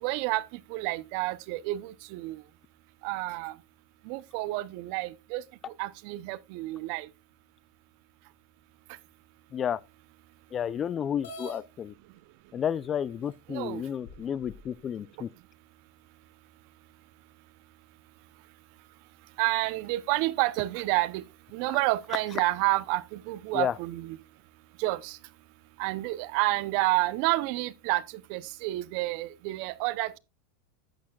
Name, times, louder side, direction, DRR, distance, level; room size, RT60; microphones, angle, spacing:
voice 1, 0.0-2.4 3.0-3.6 4.1-5.4 5.8-7.1 13.5-13.8 19.4-21.2 21.5-24.2 24.8-25.2 25.8-28.0 28.3-30.2, right 19 dB, 60° right, 0.6 m, -29 dB
voice 2, 10.5-11.9 12.5-15.3 23.5-23.7, left 9 dB, 30° left, 0.4 m, -31 dB
sound 1, 11.2-11.6 12.6-12.7 13.3-13.4 14.0-14.7, left 1 dB, 80° left, 3.7 m, -44 dB
11.5 x 8.7 x 2.3 m
hypercardioid pair, 115°, 0 cm